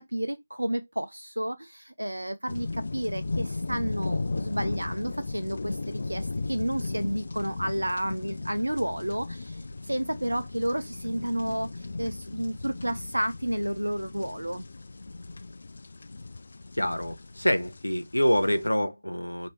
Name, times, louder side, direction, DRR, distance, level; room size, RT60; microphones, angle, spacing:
voice 1, 0.0-14.7, right 1 dB, 85° right, 0.5 m, -31 dB
sound 1, 2.5-18.7, left 3 dB, 55° left, 0.4 m, -36 dB
voice 2, 16.8-19.5, equal, 90° left, 0.9 m, -26 dB
5.1 x 2.7 x 3.2 m
figure-of-eight pair, 155°, 0 cm